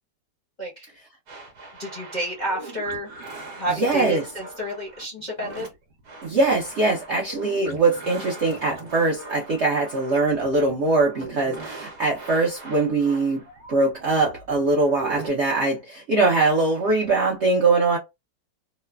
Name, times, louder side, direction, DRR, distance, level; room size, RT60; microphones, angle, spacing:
sound 1, 1.3-15.3, right 2 dB, 50° right, 1.0 m, -41 dB
voice 1, 1.8-3.1 3.6-5.7, equal, 40° left, 0.6 m, -30 dB
voice 2, 3.7-4.3 6.2-13.4 13.7-18.0, right 3 dB, 65° right, 0.7 m, -22 dB
3.1 x 2.0 x 2.2 m
omnidirectional pair, 1.9 m